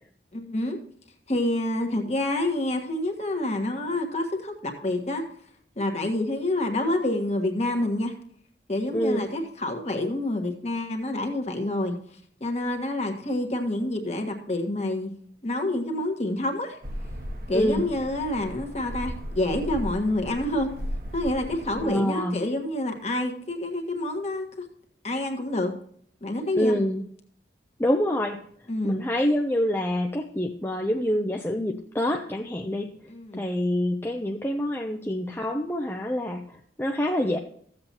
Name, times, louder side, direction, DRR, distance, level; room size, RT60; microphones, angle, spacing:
voice 1, 0.3-0.8 1.3-5.2 5.8-8.1 8.7-11.9 12.4-15.1 15.4-16.8 17.5-20.7 21.1-24.6 25.0-25.7 26.2-26.8 28.7-29.0 33.1-33.4, left 1 dB, 35° left, 4 dB, 1.5 m, -27 dB
voice 2, 8.9-9.3 17.5-17.9 21.8-22.4 26.5-27.0 27.8-28.4 28.8-32.9 33.4-37.4, equal, 10° left, 2 dB, 0.5 m, -26 dB
sound 1, 16.8-21.9, equal, 55° right, 1.4 m, -36 dB
15.0 x 7.8 x 2.9 m, 0.62 s
head